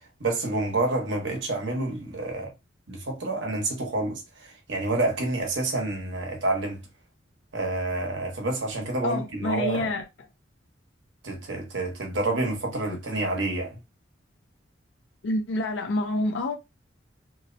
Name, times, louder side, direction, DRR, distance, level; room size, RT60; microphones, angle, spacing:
voice 1, 0.2-2.5 2.9-6.9 7.5-9.9 11.2-13.8, right 2 dB, 75° right, 1.0 m, -28 dB
voice 2, 9.0-10.0 15.2-16.6, left 1 dB, 70° left, 0.5 m, -27 dB
2.7 x 2.0 x 2.6 m
head